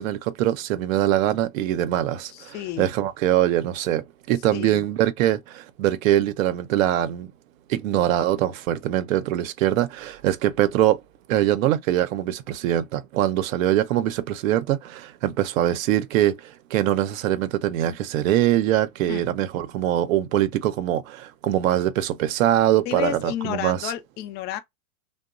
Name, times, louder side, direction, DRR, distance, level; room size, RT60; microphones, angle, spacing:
voice 1, 0.0-7.3 7.7-11.0 11.3-23.9, right 12 dB, 60° right, 0.7 m, -23 dB
voice 2, 2.2-2.9 4.5-4.8 19.1-19.3 22.9-24.6, left 12 dB, 25° left, 0.4 m, -31 dB
2.9 x 2.2 x 2.4 m
hypercardioid pair, 115°, 45 cm